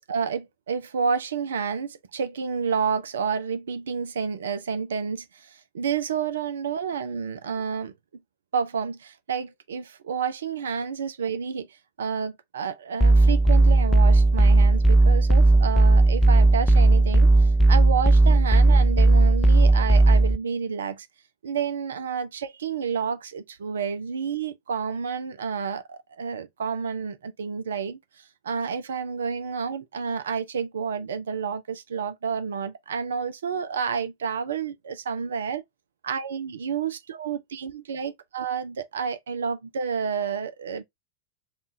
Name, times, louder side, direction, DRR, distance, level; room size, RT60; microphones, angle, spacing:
voice 1, 0.1-7.9 8.5-11.7 12.0-21.1 21.4-35.6 36.0-40.8, right 6 dB, 65° right, 0.5 m, -30 dB
sound 1, 13.0-20.4, right 2 dB, 10° left, 0.5 m, -16 dB
3.7 x 2.3 x 2.6 m
figure-of-eight pair, 90°, 0 cm